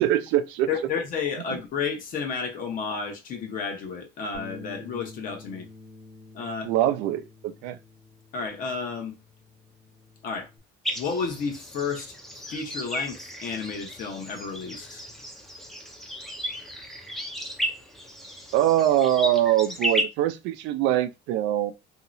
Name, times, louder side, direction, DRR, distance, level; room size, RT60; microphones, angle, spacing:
voice 1, 0.0-0.7 6.6-7.8 18.5-21.7, right 12 dB, 90° right, 0.5 m, -23 dB
voice 2, 0.7-5.7 6.3-6.7 8.3-9.2 10.2-10.5 11.0-12.1 12.5-15.0, left 5 dB, 50° left, 0.9 m, -31 dB
Bass guitar, 4.3-10.6, left 2 dB, 25° right, 0.8 m, -48 dB
sound 1, 10.8-20.0, equal, ahead, 0.5 m, -34 dB
2.9 x 2.8 x 2.5 m
cardioid pair, 155°, 18 cm